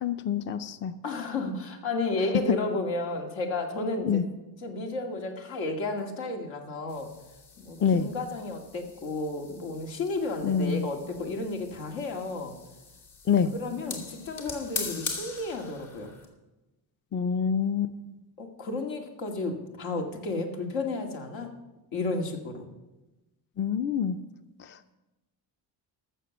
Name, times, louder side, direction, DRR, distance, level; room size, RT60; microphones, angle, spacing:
voice 1, 0.0-0.9 4.0-4.2 7.8-8.1 10.4-10.9 13.3-13.5 17.1-17.9 23.6-24.2, left 7 dB, 30° left, 12 dB, 0.4 m, -26 dB
voice 2, 1.0-4.2 4.6-7.1 7.6-12.5 13.5-16.1 18.4-21.5 21.9-22.7, left 2 dB, 80° left, 3 dB, 2.3 m, -32 dB
sound 1, 6.9-16.3, left 4 dB, 60° left, 2.8 m, -42 dB
13.5 x 6.8 x 7.2 m, 1.0 s
cardioid pair, 145°, 44 cm